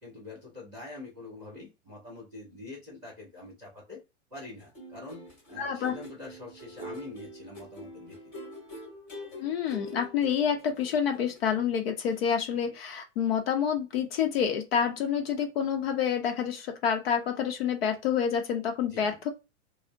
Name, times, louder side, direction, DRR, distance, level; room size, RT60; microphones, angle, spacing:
voice 1, 0.0-4.0 4.3-8.2 18.9-19.2, left 2 dB, 5° right, -14 dB, 0.4 m, -45 dB
sound 1, 4.6-11.8 12.1-12.3, left 1 dB, 20° left, 1.5 m, -45 dB
voice 2, 5.6-5.9 9.4-19.3, left 7 dB, 50° left, 5 dB, 0.7 m, -28 dB
3.4 x 2.1 x 2.5 m, 0.26 s
supercardioid pair, 180°, 39 cm